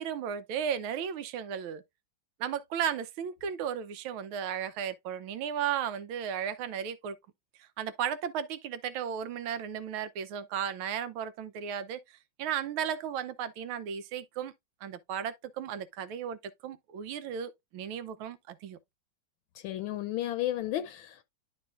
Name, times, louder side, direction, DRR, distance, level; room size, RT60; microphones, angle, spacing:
voice 1, 0.0-1.8 2.4-7.2 7.6-14.5 14.8-18.8, right 8 dB, 80° right, 1.5 m, -35 dB
voice 2, 19.6-21.2, left 13 dB, 80° left, 1.4 m, -33 dB
11.0 x 4.5 x 2.4 m
omnidirectional pair, 2.2 m